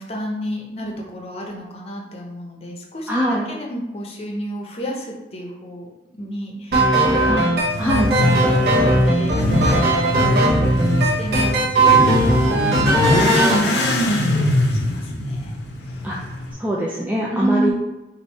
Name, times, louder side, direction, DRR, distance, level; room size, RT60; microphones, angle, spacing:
voice 1, 0.0-3.1 3.5-5.9 6.2-7.4 7.8-15.5 15.8-16.0 17.2-17.7, right 1 dB, 35° left, 0 dB, 0.7 m, -31 dB
voice 2, 3.1-3.5 7.3-7.5 7.8-8.1 16.0-16.3 16.6-17.7, equal, 10° right, -4 dB, 0.4 m, -22 dB
sound 1, 6.7-13.6, right 1 dB, 65° right, 0.9 m, -18 dB
Motorcycle / Accelerating revving vroom, 7.6-16.5, left 1 dB, 70° left, 0.6 m, -22 dB
3.4 x 2.6 x 4.1 m, 1.0 s
head